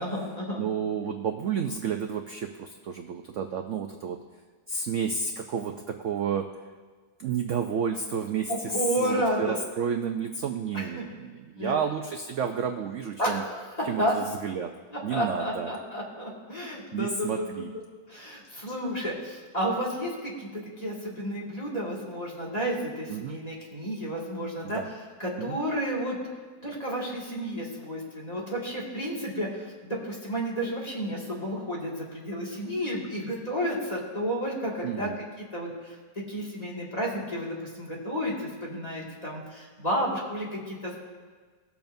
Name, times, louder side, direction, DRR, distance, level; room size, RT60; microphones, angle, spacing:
voice 1, 0.0-0.6 8.5-9.6 10.7-11.0 11.6-11.8 13.2-13.7 14.0-14.1 14.9-24.8 25.2-26.2 26.6-35.1 35.5-36.0 36.3-40.9, equal, 25° left, -5 dB, 2.1 m, -31 dB
voice 2, 0.6-4.2 4.7-6.5 7.2-13.4 13.8-14.7 15.0-15.7 16.9-17.7 23.1-23.4 24.6-24.9 25.4-25.6 34.8-35.2, right 6 dB, 65° right, 5 dB, 0.8 m, -31 dB
20.0 x 7.0 x 2.6 m, 1.5 s
omnidirectional pair, 1.8 m